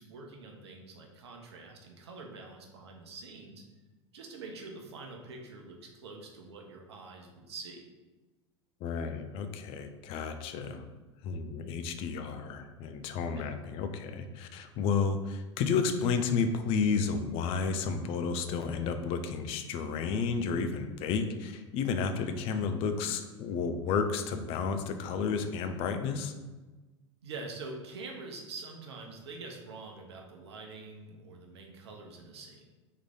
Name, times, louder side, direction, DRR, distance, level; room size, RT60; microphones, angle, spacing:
voice 1, 0.0-3.6 4.1-7.8 10.6-10.8 13.3-13.5 27.2-32.6, right 3 dB, 65° right, 1 dB, 0.8 m, -45 dB
voice 2, 8.8-10.8 11.2-26.3, left 5 dB, 40° left, 8 dB, 0.5 m, -31 dB
3.7 x 3.2 x 3.6 m, 1.2 s
figure-of-eight pair, 80°, 15 cm